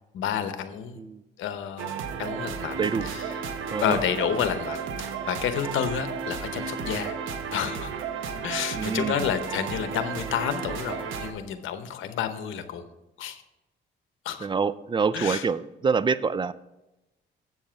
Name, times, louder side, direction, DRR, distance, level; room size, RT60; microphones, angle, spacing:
voice 1, 0.1-1.0 1.4-1.9 2.2-3.2 3.8-7.2 7.5-7.9 8.4-12.8 13.2-13.4 14.2-14.5 15.1-15.5, left 8 dB, 80° left, 10 dB, 0.9 m, -30 dB
sound 1, 1.8-11.3, right 6 dB, 85° right, 0.9 m, -33 dB
voice 2, 2.8-3.1 3.7-4.0 8.7-9.3 14.4-16.5, right 5 dB, 25° right, 17 dB, 0.4 m, -26 dB
8.0 x 7.3 x 4.5 m, 0.97 s
cardioid pair, 90°, 20 cm